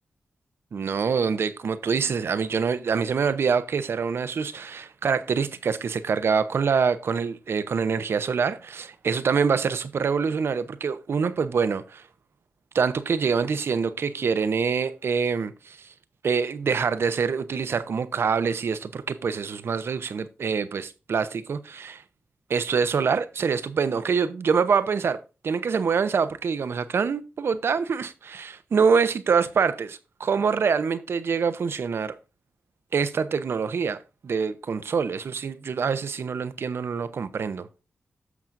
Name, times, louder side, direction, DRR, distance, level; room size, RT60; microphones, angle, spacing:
voice 1, 0.7-12.0 12.7-15.9 16.2-22.0 22.5-25.2 25.4-32.2 32.9-37.7, right 5 dB, 70° right, 0.7 m, -25 dB
14.5 x 6.0 x 2.6 m
cardioid pair, 55°, 4 cm